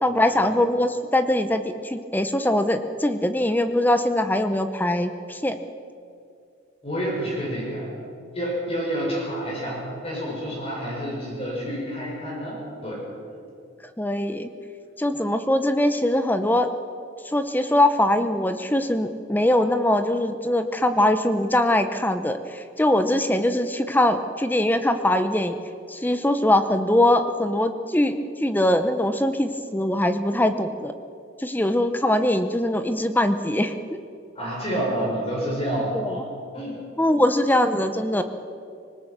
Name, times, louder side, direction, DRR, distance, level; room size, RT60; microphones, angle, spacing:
voice 1, 0.0-5.6 14.0-14.5 15.0-16.7 17.2-25.6 25.9-30.9 31.4-33.8 35.9-36.1 37.0-38.2, left 1 dB, 10° left, 9 dB, 0.8 m, -22 dB
voice 2, 6.8-7.9 8.3-13.0 34.3-36.3 36.5-37.2, equal, 30° left, -3 dB, 6.6 m, -29 dB
25.0 x 20.0 x 6.1 m, 2.4 s
head